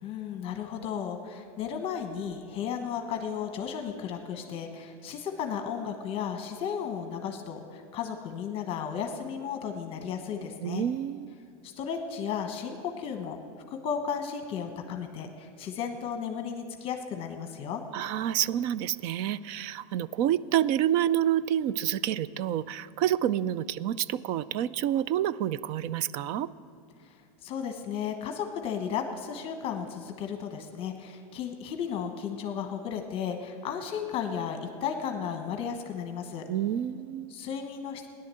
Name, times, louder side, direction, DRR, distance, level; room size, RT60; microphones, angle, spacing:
voice 1, 0.0-10.8 11.6-13.4 13.7-17.8 27.0-27.1 27.4-36.5 37.3-38.1, left 7 dB, 30° left, 5 dB, 1.1 m, -34 dB
voice 2, 10.6-11.4 17.9-26.5 36.5-37.3, right 11 dB, 40° right, 19 dB, 0.4 m, -28 dB
16.0 x 10.5 x 7.6 m, 2.4 s
supercardioid pair, 155°, 18 cm